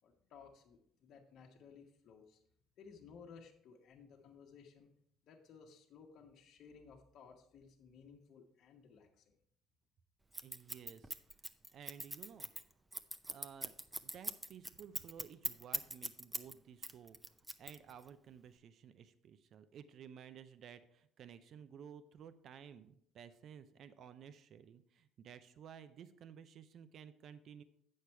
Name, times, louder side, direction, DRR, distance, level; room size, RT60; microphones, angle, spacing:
voice 1, 0.0-2.4 2.8-4.9 5.2-9.4, left 6 dB, 65° left, 0 dB, 1.1 m, -58 dB
Scissors, 10.3-16.5 16.8-18.1, right 1 dB, 10° right, 0.6 m, -41 dB
voice 2, 10.4-11.4 11.7-12.5 13.3-17.2 17.6-27.6, right 8 dB, 60° right, 12 dB, 0.6 m, -55 dB
8.3 x 6.5 x 4.5 m, 0.71 s
cardioid pair, 90°, 0 cm